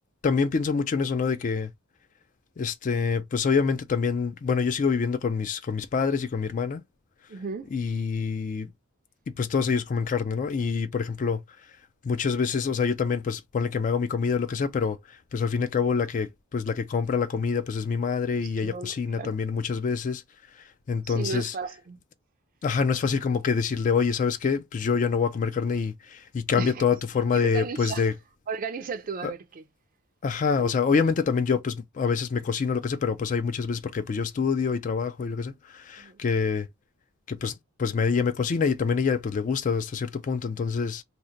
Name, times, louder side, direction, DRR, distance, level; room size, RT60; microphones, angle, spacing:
voice 1, 0.2-1.7 2.6-6.8 7.7-8.7 9.4-11.4 12.0-20.2 20.5-21.5 22.6-28.1 29.2-29.3 30.2-36.7 37.3-41.0, left 5 dB, 35° left, 0.3 m, -26 dB
voice 2, 7.3-7.7 18.4-19.3 21.1-22.0 26.5-26.8 27.3-28.1 28.5-29.6 30.6-30.7 36.0-36.2, right 5 dB, 40° right, 0.4 m, -35 dB
2.8 x 2.1 x 3.8 m
head